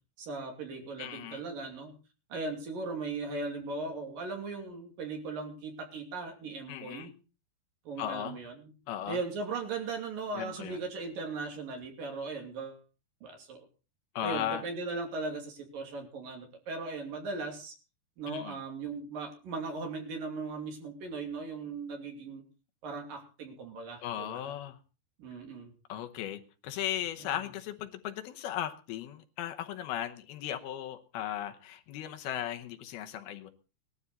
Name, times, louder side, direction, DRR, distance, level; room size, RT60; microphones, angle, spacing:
voice 1, 0.2-1.9 2.3-7.1 7.9-8.7 9.1-12.8 13.2-13.7 14.2-17.7 18.2-22.4 22.8-24.4 25.2-25.7 27.2-27.3, right 3 dB, 60° right, 3 dB, 4.2 m, -38 dB
voice 2, 1.0-1.4 6.7-7.1 8.0-8.4 8.9-9.2 10.3-10.8 14.2-14.6 18.3-18.6 24.0-24.8 25.9-33.5, left 11 dB, 75° left, 7 dB, 2.8 m, -37 dB
20.0 x 12.5 x 4.1 m, 0.34 s
omnidirectional pair, 4.7 m